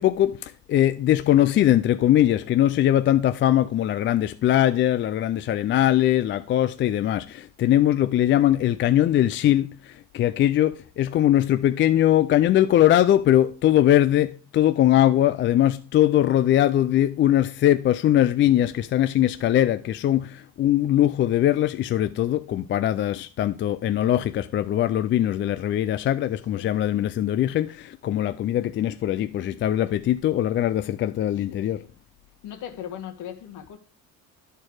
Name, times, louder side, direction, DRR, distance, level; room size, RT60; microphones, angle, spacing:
voice 1, 0.0-31.8, left 12 dB, 35° left, 0.4 m, -21 dB
voice 2, 31.4-31.9 32.4-33.8, left 9 dB, 60° left, 1.8 m, -38 dB
12.0 x 4.5 x 4.7 m
cardioid pair, 130°, 35 cm